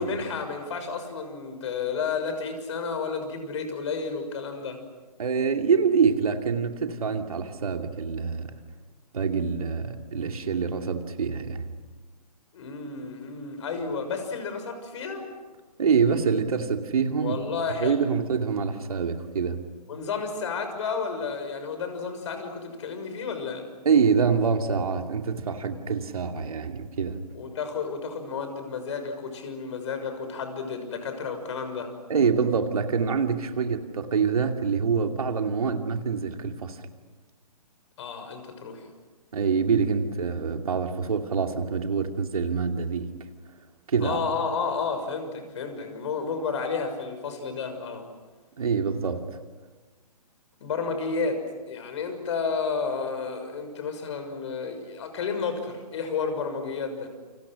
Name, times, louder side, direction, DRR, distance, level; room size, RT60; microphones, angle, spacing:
voice 1, 0.0-4.8 12.5-15.3 17.2-18.1 19.9-23.7 27.3-31.9 38.0-38.8 44.0-48.1 50.6-57.1, left 5 dB, 45° left, 7 dB, 6.5 m, -31 dB
voice 2, 5.2-8.6 9.1-11.7 15.8-17.4 17.8-19.6 23.8-27.2 32.1-36.8 39.3-43.1 43.9-44.2 48.6-49.4, right 5 dB, 65° right, 5 dB, 2.6 m, -25 dB
29.5 x 27.0 x 6.4 m, 1.3 s
figure-of-eight pair, 130°, 20 cm